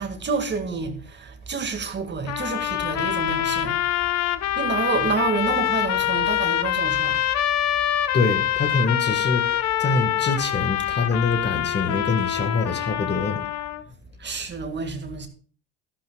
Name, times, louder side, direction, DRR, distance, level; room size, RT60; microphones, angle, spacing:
voice 1, 0.0-3.8 4.5-7.2 14.2-15.3, right 4 dB, 35° right, 2.0 m, -28 dB
sound 1, 2.3-13.8, left 11 dB, 55° left, 1.0 m, -25 dB
voice 2, 8.1-13.4, left 3 dB, 30° left, 1.6 m, -25 dB
12.5 x 11.5 x 2.3 m
supercardioid pair, 75°, 33 cm